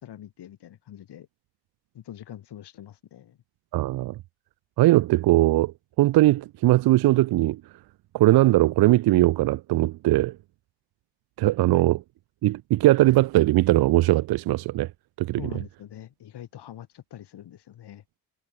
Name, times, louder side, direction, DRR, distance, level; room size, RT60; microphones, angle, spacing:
voice 1, 0.0-1.3 1.9-3.4 11.7-11.8 15.4-18.0, left 11 dB, 70° left, 2.2 m, -43 dB
voice 2, 3.7-4.1 4.8-7.6 8.1-10.3 11.4-12.0 12.4-14.9 15.2-15.4, right 16 dB, 60° right, 0.5 m, -20 dB
cardioid pair, 65°, 42 cm